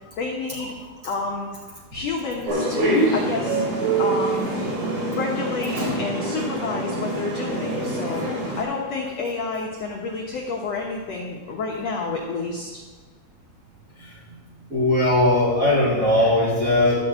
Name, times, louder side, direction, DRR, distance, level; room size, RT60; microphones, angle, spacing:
voice 1, 0.2-1.5 1.9-3.6 4.0-4.8 5.1-12.7, left 4 dB, 75° left, -2 dB, 1.5 m, -29 dB
sound 1, 2.5-8.6, right 2 dB, 85° right, 5.7 m, -25 dB
voice 2, 14.7-17.0, left 1 dB, 25° right, -7 dB, 2.8 m, -19 dB
12.5 x 6.0 x 8.0 m, 1.4 s
omnidirectional pair, 4.6 m